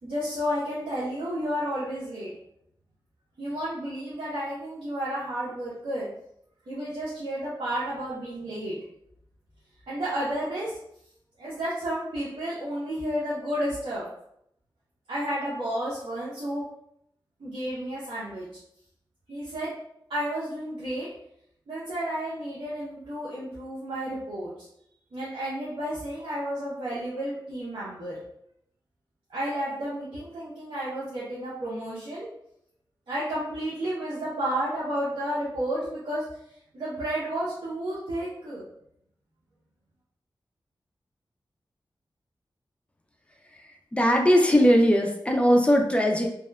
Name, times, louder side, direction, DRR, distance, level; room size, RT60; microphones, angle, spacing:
voice 1, 0.0-2.3 3.4-6.1 6.7-8.7 9.9-10.7 11.4-14.0 15.1-16.6 17.4-18.5 19.3-19.7 20.1-21.1 21.7-24.7 25.1-28.2 29.3-32.3 33.1-36.2 36.7-38.6, equal, 80° right, -9 dB, 0.7 m, -31 dB
voice 2, 43.9-46.3, equal, 15° left, 2 dB, 0.4 m, -20 dB
2.8 x 2.2 x 2.2 m, 0.74 s
wide cardioid pair, 85°, 9 cm